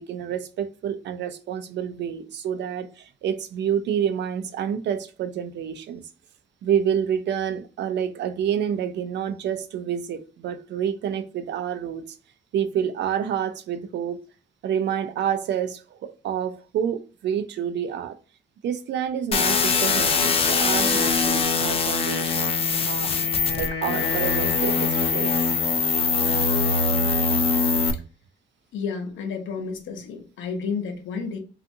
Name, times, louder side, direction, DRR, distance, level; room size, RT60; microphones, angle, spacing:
voice 1, 0.0-6.0 6.6-12.0 12.5-14.2 14.6-18.1 18.6-23.1 23.6-25.3, right 8 dB, 60° right, 0.4 m, -28 dB
sound 1, 19.3-27.9, left 4 dB, 30° left, 0.4 m, -22 dB
Wind instrument woodwind instrument, 22.0-26.0, left 6 dB, 60° left, 1.1 m, -33 dB
voice 2, 28.7-31.4, left 5 dB, 75° left, 0.7 m, -31 dB
2.5 x 2.4 x 2.5 m
cardioid pair, 90°, 20 cm